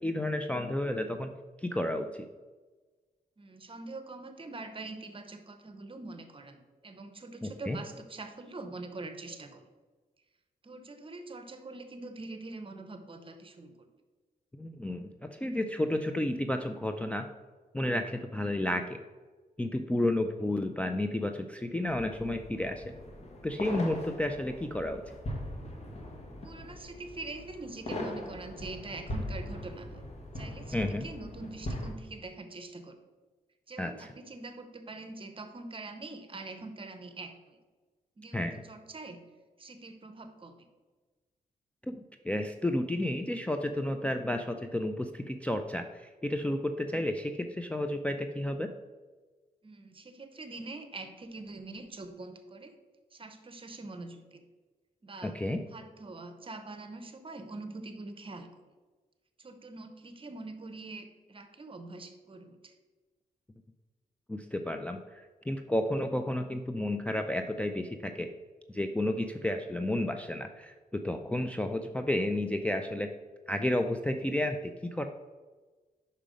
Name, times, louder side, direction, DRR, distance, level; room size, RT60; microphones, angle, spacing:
voice 1, 0.0-1.3 1.6-2.3 7.4-7.8 14.6-17.3 17.7-19.0 19.6-22.9 23.4-25.0 30.7-31.1 33.8-34.1 38.3-38.6 41.9-48.7 55.2-55.6 64.3-68.3 68.7-73.1 73.5-75.1, left 1 dB, 10° left, 5 dB, 0.3 m, -32 dB
voice 2, 3.4-9.7 10.6-13.9 26.4-30.0 30.3-33.0 33.7-37.6 38.2-39.2 39.6-40.7 49.6-52.7 53.1-54.5 55.0-55.4 55.7-58.6 59.4-62.7, right 3 dB, 35° right, 8 dB, 0.8 m, -44 dB
sound 1, 21.9-31.9, left 1 dB, 40° left, 1.2 m, -40 dB
5.6 x 5.0 x 5.1 m, 1.3 s
wide cardioid pair, 95°, 16 cm